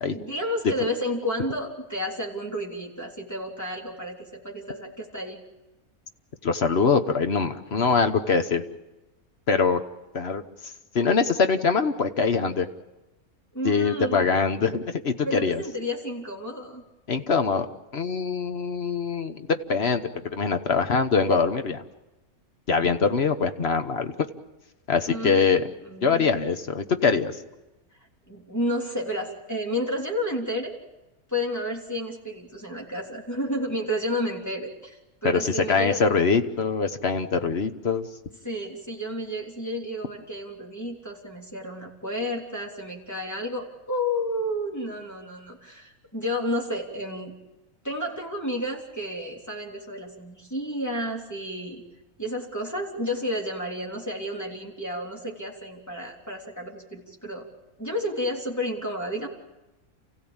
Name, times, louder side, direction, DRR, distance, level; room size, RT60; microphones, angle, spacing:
voice 1, 0.1-5.4 13.5-14.3 15.2-16.8 25.1-25.5 25.9-26.3 28.3-30.8 31.3-36.0 38.4-47.3 47.8-51.8 52.2-57.4 57.8-59.3, left 1 dB, 10° left, -1 dB, 3.4 m, -31 dB
voice 2, 6.4-8.6 9.5-9.8 10.1-10.4 10.9-12.7 13.6-15.6 17.1-17.7 17.9-21.8 22.7-24.1 24.9-25.6 26.0-27.4 35.2-38.1, left 5 dB, 45° left, 8 dB, 1.3 m, -23 dB
29.0 x 16.0 x 8.8 m, 1.0 s
omnidirectional pair, 1.5 m